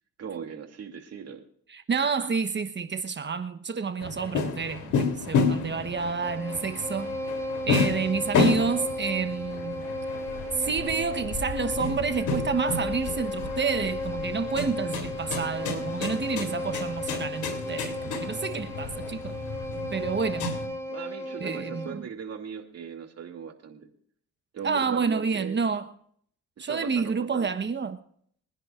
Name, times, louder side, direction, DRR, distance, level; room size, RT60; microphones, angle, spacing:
voice 1, 0.2-1.4 20.9-23.9 24.5-25.7 26.6-27.5, right 7 dB, 55° right, 2.8 m, -39 dB
voice 2, 1.7-7.2 7.7-9.8 10.6-19.4 19.9-20.5 21.4-22.1 24.6-25.9 26.6-28.0, right 5 dB, 35° right, 1.2 m, -29 dB
sound 1, 4.0-20.7, left 4 dB, 80° left, 3.4 m, -31 dB
Bowed string instrument, 5.5-22.1, left 1 dB, 10° left, 2.3 m, -35 dB
24.5 x 10.5 x 2.5 m
cardioid pair, 90°, 30 cm